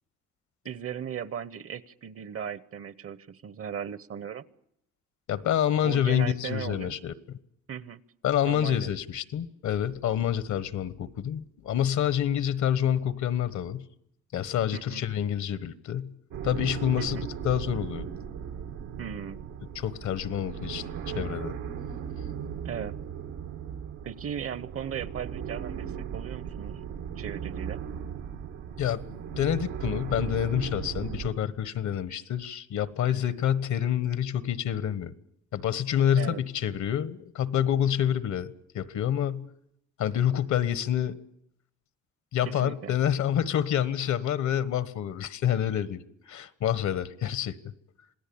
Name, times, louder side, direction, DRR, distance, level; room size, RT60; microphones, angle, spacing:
voice 1, 0.6-4.4 5.8-6.9 7.7-8.0 8.5-8.9 14.7-15.0 17.0-17.3 19.0-19.4 22.6-22.9 24.0-26.8 27.2-27.8 36.1-36.4 42.4-42.9, right 8 dB, 50° right, 1.0 m, -37 dB
voice 2, 5.3-7.1 8.2-13.8 14.3-16.1 16.4-18.1 19.7-21.5 28.8-35.1 35.5-39.5 40.0-41.2 42.3-47.6, left 10 dB, 70° left, 1.3 m, -28 dB
sound 1, 16.3-31.3, right 8 dB, 90° right, 2.1 m, -37 dB
27.0 x 18.0 x 8.7 m
cardioid pair, 90°, 30 cm